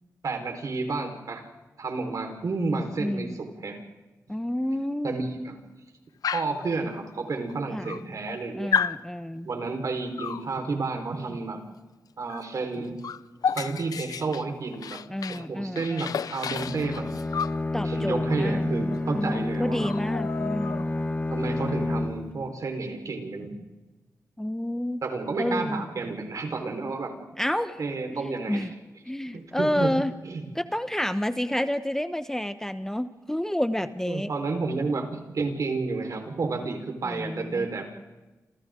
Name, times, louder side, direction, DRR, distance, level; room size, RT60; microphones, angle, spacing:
voice 1, 0.2-1.4 1.8-3.8 5.0-5.6 6.3-8.7 9.4-11.6 12.2-13.0 13.5-15.0 15.3-17.1 17.8-19.9 21.3-23.6 25.0-27.1 27.8-28.7 29.3-29.9 30.2-30.4 34.0-37.8, right 3 dB, 65° right, 4 dB, 4.7 m, -31 dB
voice 2, 3.0-3.4 4.3-5.1 7.7-7.9 8.5-9.5 15.1-16.2 17.7-20.8 24.4-25.0 25.4-25.8 27.4-27.8 28.2-28.7 29.1-30.1 30.5-34.3 37.0-37.7, left 1 dB, 5° left, 10 dB, 1.0 m, -29 dB
Dog, 6.2-6.6 7.5-7.6 7.8-8.4 8.7-9.0 10.2-10.5 12.3-12.5 12.7-15.5 15.8-17.6 18.9-19.0 19.3-19.5 19.8-21.0, left 7 dB, 85° left, 0.7 m, -31 dB
Bowed string instrument, 16.4-22.4, left 2 dB, 25° left, 2.2 m, -29 dB
29.0 x 28.0 x 3.9 m, 1.2 s
cardioid pair, 80°, 6 cm